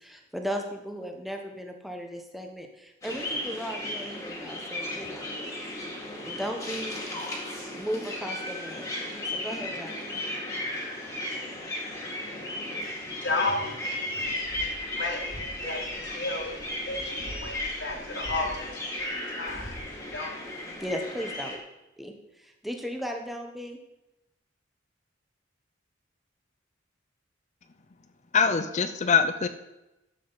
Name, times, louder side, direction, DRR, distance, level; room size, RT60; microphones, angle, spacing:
voice 1, 0.0-5.3 6.2-7.0 7.7-8.9 9.3-10.2 20.8-21.6 22.0-23.8, equal, ahead, 3 dB, 1.1 m, -36 dB
sound 1, 3.0-21.6, left 1 dB, 15° left, 1.9 m, -35 dB
voice 2, 10.6-14.4 14.9-18.7 18.9-19.8 20.1-20.3, left 2 dB, 65° left, -1 dB, 1.9 m, -35 dB
voice 3, 28.3-29.5, left 6 dB, 35° left, 9 dB, 0.5 m, -23 dB
12.0 x 7.4 x 4.0 m, 0.96 s
head